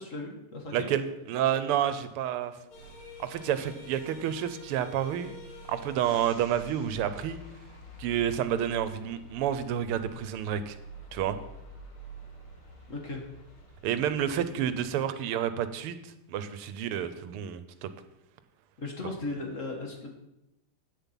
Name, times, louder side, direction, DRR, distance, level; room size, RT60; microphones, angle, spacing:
voice 1, 0.0-0.9 12.9-13.4 16.8-17.1 18.8-20.1, left 2 dB, 40° left, 1 dB, 1.5 m, -37 dB
voice 2, 0.7-2.5 3.2-5.3 5.7-7.4 8.0-10.8 11.1-11.4 13.8-16.0 16.3-17.9, right 10 dB, 90° right, 12 dB, 1.6 m, -29 dB
sound 1, 2.7-14.8, equal, 70° left, 2.8 m, -47 dB
8.7 x 7.0 x 5.7 m, 0.88 s
omnidirectional pair, 2.4 m